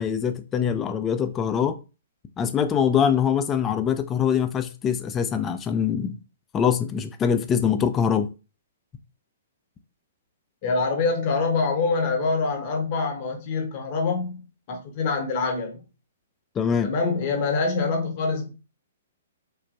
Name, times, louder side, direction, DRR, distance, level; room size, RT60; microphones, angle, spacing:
voice 1, 0.0-1.8 2.4-6.2 6.5-8.3 16.6-16.9, left 7 dB, 20° left, 0.3 m, -23 dB
voice 2, 10.6-14.4 14.7-15.8 16.8-18.5, left 4 dB, 40° left, 0.7 m, -25 dB
3.3 x 2.2 x 2.5 m
figure-of-eight pair, 120°, 0 cm